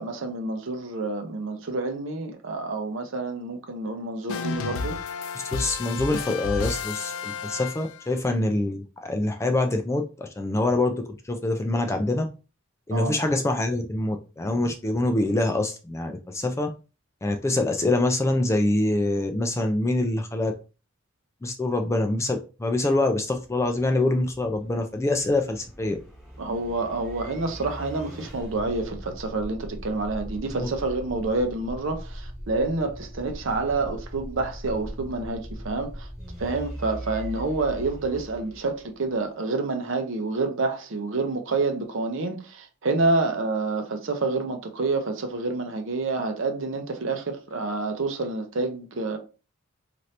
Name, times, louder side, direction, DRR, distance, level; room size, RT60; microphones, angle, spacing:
voice 1, 0.0-5.0 12.9-13.2 26.4-36.1 36.4-49.2, right 3 dB, 65° right, 0.6 m, -28 dB
sound 1, 4.3-8.2, left 5 dB, 85° left, 0.4 m, -32 dB
voice 2, 5.4-12.3 12.9-16.7 17.2-20.5 21.4-26.0 30.6-30.7, left 2 dB, 15° left, 0.3 m, -25 dB
sound 2, 23.5-39.2, equal, ahead, 1.2 m, -40 dB
2.8 x 2.5 x 3.2 m
head